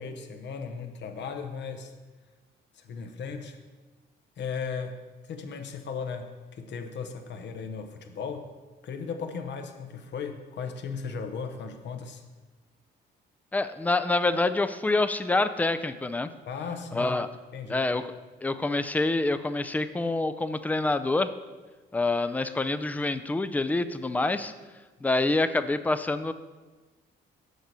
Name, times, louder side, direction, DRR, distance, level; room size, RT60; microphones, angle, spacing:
voice 1, 0.0-1.9 2.7-3.6 4.4-8.5 8.8-12.2 16.5-17.1 17.5-17.9, left 5 dB, 65° left, 6 dB, 1.0 m, -36 dB
voice 2, 13.5-16.3 16.9-17.3 17.7-18.1 18.4-21.3 21.9-24.5 25.0-26.3, left 2 dB, 10° left, 11 dB, 0.4 m, -26 dB
6.6 x 4.7 x 6.7 m, 1.3 s
cardioid pair, 90°, 20 cm